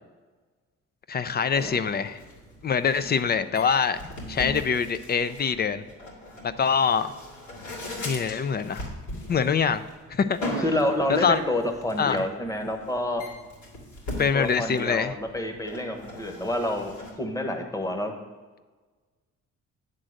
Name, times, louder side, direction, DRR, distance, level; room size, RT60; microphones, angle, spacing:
voice 1, 1.1-2.2 2.6-5.8 6.6-7.1 8.0-8.9 9.3-9.8 10.1-10.6 11.1-11.4 12.0-12.2 14.2-15.1, left 6 dB, 35° left, 12 dB, 0.4 m, -24 dB
sound 1, 1.5-17.1, left 1 dB, 85° left, 2.5 m, -39 dB
voice 2, 10.6-13.2 14.3-18.1, left 1 dB, 10° left, 4 dB, 1.2 m, -28 dB
8.9 x 3.8 x 6.4 m, 1.4 s
cardioid pair, 90°, 30 cm